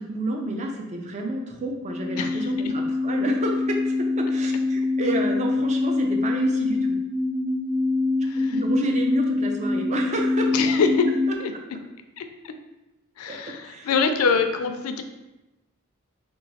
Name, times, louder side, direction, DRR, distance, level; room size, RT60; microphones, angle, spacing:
voice 1, 0.0-7.0 8.5-10.5 13.3-13.9, right 1 dB, 30° right, 2 dB, 0.4 m, -30 dB
sound 1, 1.7-11.3, left 3 dB, 90° right, 0.9 m, -25 dB
voice 2, 8.2-8.6 10.5-11.1 11.4-11.5 12.2-12.5 13.2-15.0, left 5 dB, 85° left, 7 dB, 0.4 m, -24 dB
2.9 x 2.2 x 4.0 m, 1.0 s
head